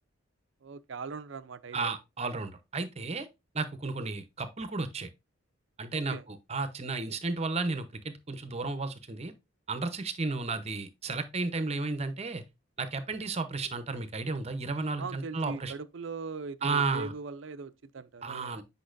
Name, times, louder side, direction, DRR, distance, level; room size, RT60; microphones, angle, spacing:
voice 1, 0.6-1.8 5.9-6.2 15.0-18.6, right 4 dB, 65° right, 0.5 m, -40 dB
voice 2, 1.7-3.3 3.5-5.1 5.8-9.3 9.7-12.4 12.8-15.7 16.6-17.1 18.2-18.6, right 3 dB, 30° right, 0.8 m, -33 dB
8.6 x 5.3 x 2.5 m
head